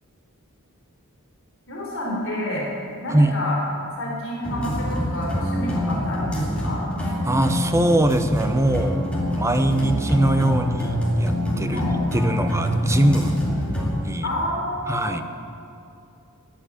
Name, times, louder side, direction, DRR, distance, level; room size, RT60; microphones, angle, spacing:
voice 1, 1.7-2.7 3.0-3.6 4.0-6.8 11.7-11.9 14.2-15.1, left 1 dB, 60° left, -4 dB, 3.8 m, -29 dB
sound 1, 4.4-13.9, equal, 5° left, 2.5 m, -25 dB
voice 2, 7.2-9.1 9.3-13.4 14.0-14.2 14.9-15.2, right 1 dB, 15° right, 8 dB, 0.7 m, -22 dB
16.5 x 5.8 x 9.8 m, 2.6 s
head